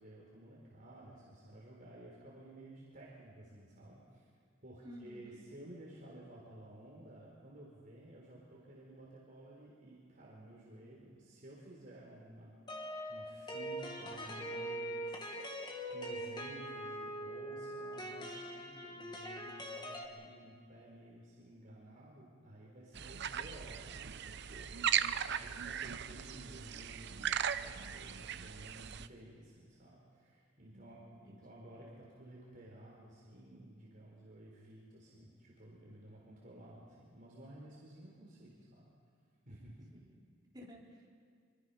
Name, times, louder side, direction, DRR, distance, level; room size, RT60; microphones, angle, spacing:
voice 1, 0.0-4.3 4.6-12.6 13.1-38.9 39.5-39.9, right 1 dB, 45° right, -4 dB, 4.1 m, -54 dB
voice 2, 4.8-5.4 30.7-31.4 39.9-40.2 40.5-41.1, equal, 20° right, -3 dB, 3.8 m, -53 dB
sound 1, 12.7-20.1, right 1 dB, 20° left, 1.9 m, -42 dB
sound 2, 22.9-29.1, right 9 dB, 60° right, 0.7 m, -38 dB
26.0 x 23.0 x 5.7 m, 2.1 s
head